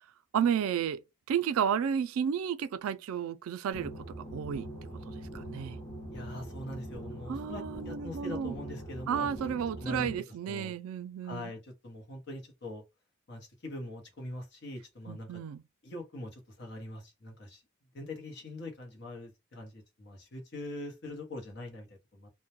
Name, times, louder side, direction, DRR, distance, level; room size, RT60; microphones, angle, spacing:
voice 1, 0.3-1.0 1.3-3.9 4.3-4.7 5.0-5.8 7.3-8.5 9.1-11.5 15.1-15.6, right 8 dB, 80° right, 0.3 m, -32 dB
sound 1, 3.7-10.2, right 1 dB, 5° left, 0.7 m, -43 dB
voice 2, 6.1-9.3 9.8-10.1 10.5-10.7 11.2-12.8 13.3-15.4 15.8-17.6 17.9-22.3, left 1 dB, 50° left, 0.8 m, -42 dB
2.2 x 2.1 x 2.8 m
head